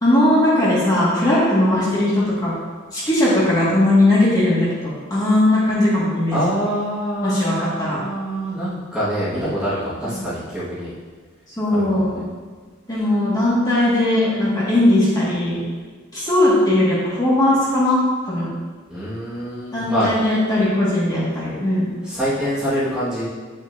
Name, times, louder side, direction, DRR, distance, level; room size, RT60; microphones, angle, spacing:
voice 1, 0.0-2.5 2.9-6.4 7.2-8.0 10.1-10.2 11.6-12.2 12.9-15.6 16.1-18.0 18.3-18.5 19.7-21.9, left 1 dB, 20° left, -8 dB, 1.9 m, -18 dB
voice 2, 6.3-10.9 11.7-12.1 18.9-20.1 22.0-23.2, equal, 5° right, -12 dB, 1.7 m, -25 dB
8.8 x 6.2 x 2.7 m, 1.5 s
head